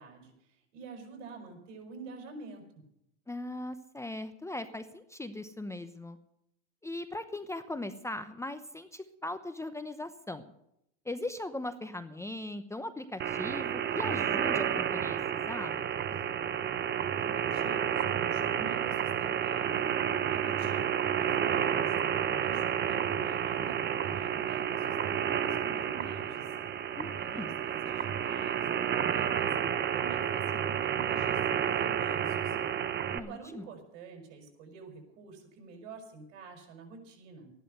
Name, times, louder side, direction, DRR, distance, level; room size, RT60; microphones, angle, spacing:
voice 1, 0.0-2.8 17.0-19.9 20.3-26.5 27.1-29.5 29.9-32.6 33.2-37.5, right 4 dB, 70° right, 3 dB, 5.8 m, -48 dB
voice 2, 3.3-6.2 6.8-10.5 11.0-16.1 27.0-27.5 33.1-33.7, left 2 dB, 10° left, 10 dB, 0.8 m, -39 dB
sound 1, 13.2-33.2, right 8 dB, 30° right, 1.0 m, -30 dB
14.0 x 11.5 x 6.7 m, 0.78 s
supercardioid pair, 115°, 36 cm